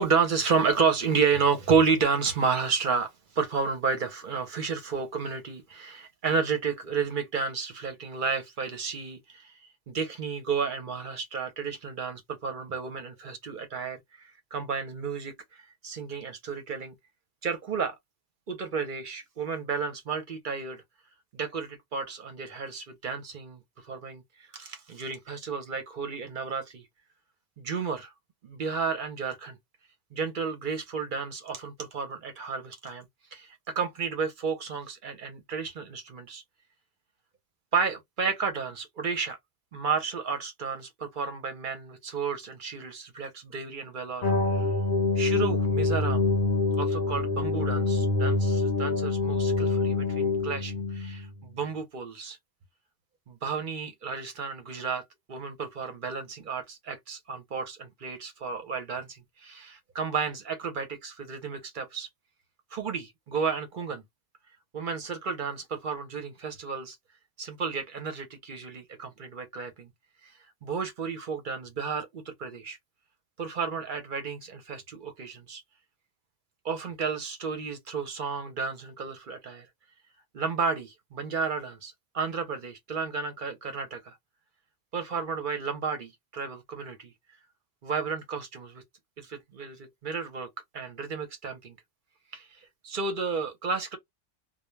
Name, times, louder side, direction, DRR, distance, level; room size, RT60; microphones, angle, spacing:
voice 1, 0.0-9.5 9.9-15.3 15.8-16.9 17.4-18.0 18.5-20.8 21.3-23.6 23.9-24.2 24.5-26.8 27.6-28.1 28.4-29.6 30.1-36.4 37.7-39.4 39.7-44.7 45.2-46.3 46.8-52.4 53.3-62.1 62.7-64.0 64.7-67.0 67.4-69.9 70.6-72.8 73.4-75.6 76.6-79.7 80.3-84.1 84.9-87.1 87.8-88.8 89.2-91.7 92.3-92.5 92.8-94.0, right 5 dB, 50° right, 0.7 m, -31 dB
sound 1, 44.2-51.3, left 3 dB, 55° left, 0.8 m, -26 dB
2.2 x 2.1 x 3.1 m
omnidirectional pair, 1.2 m